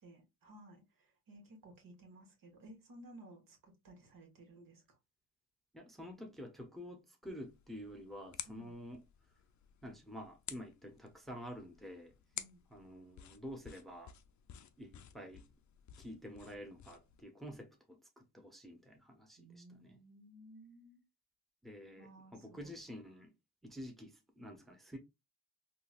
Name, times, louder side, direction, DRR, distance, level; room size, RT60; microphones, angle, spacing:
voice 1, 0.0-4.8 8.5-8.7 12.3-12.6 19.4-21.0 22.0-22.7, right 1 dB, 65° right, 1.4 m, -57 dB
voice 2, 5.7-9.0 9.8-12.1 12.7-14.1 14.8-15.5 16.0-20.0 21.6-23.3 23.6-25.0, equal, ahead, 0.8 m, -49 dB
sound 1, 7.2-17.2, left 10 dB, 55° left, 0.5 m, -53 dB
3.9 x 2.3 x 2.4 m
cardioid pair, 70°, 36 cm